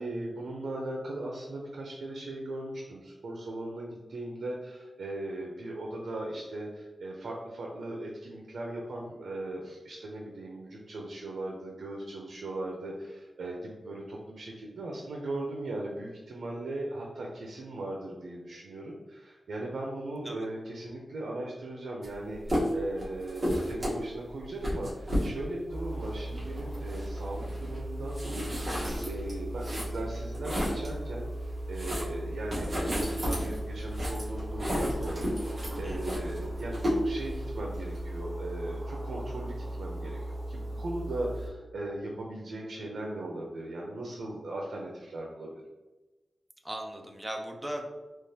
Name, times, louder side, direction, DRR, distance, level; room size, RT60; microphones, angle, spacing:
voice 1, 0.0-28.6 29.0-45.6, right 1 dB, 80° right, -1 dB, 0.5 m, -38 dB
sound 1, 22.0-22.2 22.4-31.0 31.4-38.2, equal, 25° right, 1.2 m, -33 dB
sound 2, 25.7-41.5, right 1 dB, 40° right, 0.7 m, -37 dB
voice 2, 35.8-36.2 46.6-47.9, equal, 5° right, 2 dB, 0.4 m, -38 dB
3.7 x 2.9 x 2.7 m, 1.1 s
wide cardioid pair, 180°, 0 cm